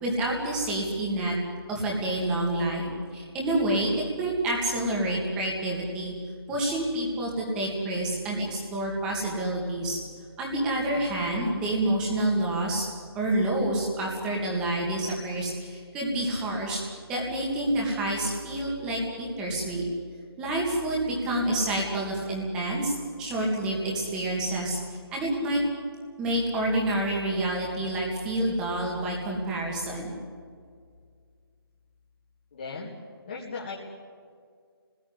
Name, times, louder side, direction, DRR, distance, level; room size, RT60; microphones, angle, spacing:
voice 1, 0.0-1.3 1.7-6.1 6.5-10.0 10.4-12.9 13.1-16.8 17.1-19.9 20.4-25.6 26.2-30.2, right 1 dB, 5° right, -2 dB, 2.4 m, -28 dB
voice 2, 32.5-33.0 33.3-33.8, left 4 dB, 25° left, -4 dB, 2.5 m, -36 dB
28.5 x 19.5 x 9.9 m, 2.1 s
hypercardioid pair, 175°, 13 cm